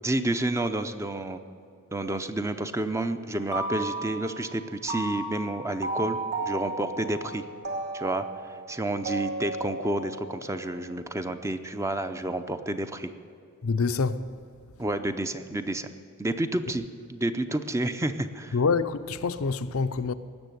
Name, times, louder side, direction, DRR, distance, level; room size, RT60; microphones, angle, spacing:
voice 1, 0.0-1.4 1.9-7.4 7.9-13.1 14.8-15.9 16.2-16.8 17.1-18.6, right 1 dB, 15° right, 0.6 m, -30 dB
sound 1, 3.3-4.5 4.9-11.0, right 2 dB, 55° right, 2.4 m, -34 dB
voice 2, 13.6-14.3 18.5-20.1, left 4 dB, 75° left, 0.6 m, -26 dB
18.5 x 7.3 x 9.1 m
head